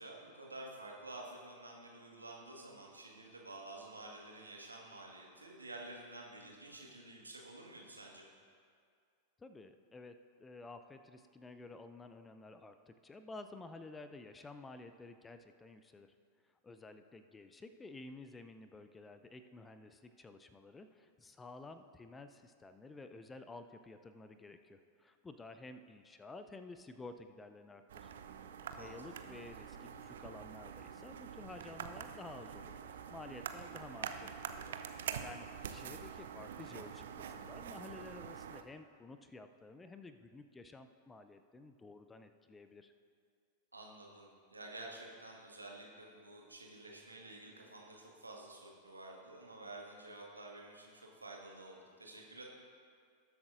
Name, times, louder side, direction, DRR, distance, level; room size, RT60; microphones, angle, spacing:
voice 1, 0.0-8.3 28.7-29.1 43.7-52.4, right 2 dB, 80° right, -1 dB, 1.6 m, -50 dB
voice 2, 9.4-16.1 16.6-28.1 28.7-34.8 35.2-42.9, left 3 dB, 15° left, 9 dB, 0.5 m, -52 dB
sound 1, 27.9-38.6, right 8 dB, 60° right, 0.5 m, -46 dB
19.5 x 7.9 x 2.6 m, 2.2 s
figure-of-eight pair, 90°, 0 cm